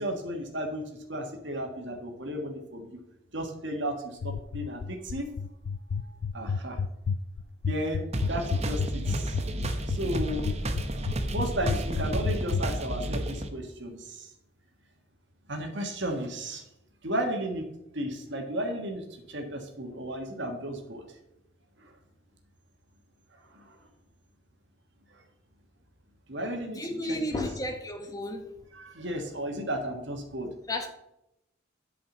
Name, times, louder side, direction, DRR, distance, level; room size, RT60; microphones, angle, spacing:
voice 1, 0.0-2.9 3.3-3.9 4.2-5.2 6.0-6.8 7.7-8.8 9.1-9.4 9.9-10.5 11.3-14.3 15.5-16.6 17.0-17.6 17.9-21.0 21.8-21.9 23.5-23.7 26.3-26.8 27.1-27.4 28.7-30.5, right 1 dB, 60° right, 2 dB, 1.5 m, -34 dB
sound 1, 4.2-12.6, left 5 dB, 60° left, 0.3 m, -29 dB
sound 2, 8.1-13.5, right 1 dB, 30° right, 0.9 m, -32 dB
voice 2, 26.7-28.5 30.7-30.9, left 1 dB, 20° left, 4 dB, 1.2 m, -33 dB
8.7 x 4.9 x 7.1 m, 0.85 s
head